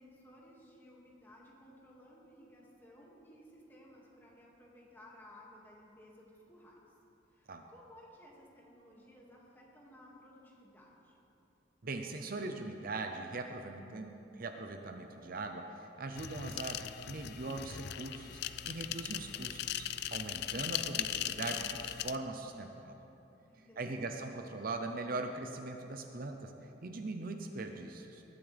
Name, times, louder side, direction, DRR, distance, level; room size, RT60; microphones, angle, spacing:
voice 1, 0.0-6.8 7.3-11.2 23.5-24.2, left 1 dB, 10° left, -4 dB, 2.2 m, -57 dB
voice 2, 11.8-23.0 23.8-26.5 26.8-28.2, right 3 dB, 50° right, 5 dB, 0.7 m, -41 dB
sound 1, 16.1-22.2, left 11 dB, 60° left, 0.4 m, -39 dB
19.5 x 12.5 x 3.5 m, 2.9 s
head